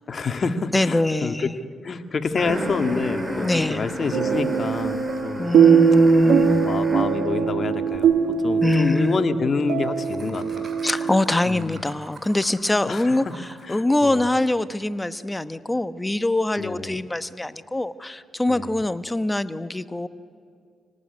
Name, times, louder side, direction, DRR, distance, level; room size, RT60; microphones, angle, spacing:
voice 1, 0.1-1.5 1.8-5.5 6.3-8.1 8.4-10.7 11.5-11.8 12.9-13.3 13.7-14.2 16.6-17.0 18.5-18.8, left 4 dB, 50° left, 8 dB, 1.8 m, -28 dB
voice 2, 0.7-1.6 3.4-3.9 5.4-6.7 8.6-9.2 10.8-20.1, left 2 dB, 15° left, 13 dB, 1.1 m, -24 dB
sound 1, 2.4-7.3, equal, 20° right, 5.2 m, -32 dB
sound 2, 4.1-11.2, right 6 dB, 85° right, 1.6 m, -21 dB
Laughter, 7.9-8.0 8.3-8.4 8.6-8.8 10.0-13.7, right 3 dB, 50° right, 4.8 m, -44 dB
26.5 x 18.5 x 9.7 m, 2.3 s
cardioid pair, 65°, 0 cm